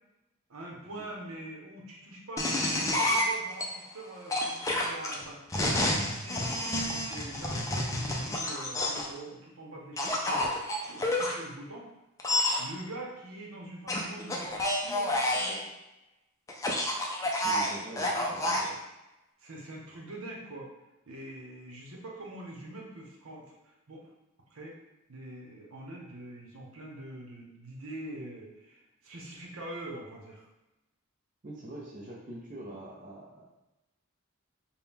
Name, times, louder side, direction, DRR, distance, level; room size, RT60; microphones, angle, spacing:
voice 1, 0.5-5.4 5.7-10.5 10.8-11.9 12.6-15.7 18.2-18.8 19.4-20.7 21.1-24.0 24.5-24.8 25.1-30.4, right 1 dB, 75° right, -2 dB, 0.9 m, -44 dB
sound 1, 2.4-3.6 4.3-9.1 10.0-11.3 12.2-12.6 13.9-15.6 16.5-18.7, left 1 dB, 15° left, 0.4 m, -29 dB
voice 2, 17.4-18.7 31.4-33.4, right 1 dB, 40° right, -4 dB, 0.6 m, -44 dB
4.3 x 2.2 x 3.5 m, 0.97 s
head